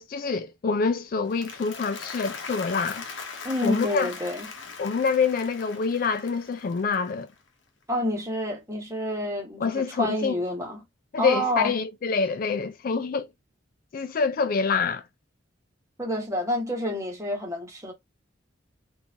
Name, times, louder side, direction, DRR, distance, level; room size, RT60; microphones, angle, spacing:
voice 1, 0.0-3.0 3.6-4.1 4.8-7.3 9.6-10.4 11.1-13.3 13.9-15.0, left 5 dB, 45° left, 0.3 m, -26 dB
Applause, 1.1-7.5, left 5 dB, 70° left, 0.8 m, -40 dB
voice 2, 3.4-4.5 7.9-10.8 11.2-11.7 16.0-17.9, left 1 dB, 15° right, 1.1 m, -28 dB
3.8 x 2.5 x 2.8 m
head